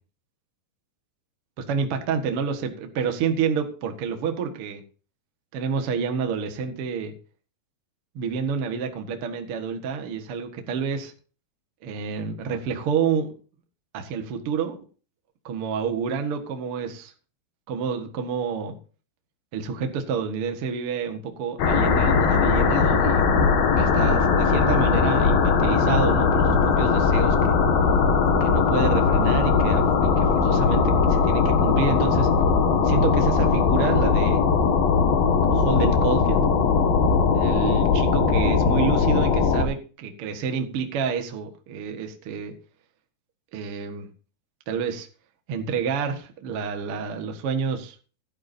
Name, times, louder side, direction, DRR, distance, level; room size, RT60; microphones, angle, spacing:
voice 1, 1.7-4.8 5.5-7.1 8.1-11.1 11.8-13.3 13.9-14.8 15.4-17.1 17.7-18.8 19.5-23.3 23.7-27.6 28.4-32.3 32.8-34.4 35.5-36.4 37.3-42.5 43.5-44.1 44.7-45.1 45.5-47.9, right 6 dB, 65° right, 5 dB, 1.4 m, -28 dB
sound 1, 21.6-39.6, left 5 dB, 65° left, 3.2 m, -20 dB
16.0 x 11.0 x 2.7 m, 0.37 s
omnidirectional pair, 5.0 m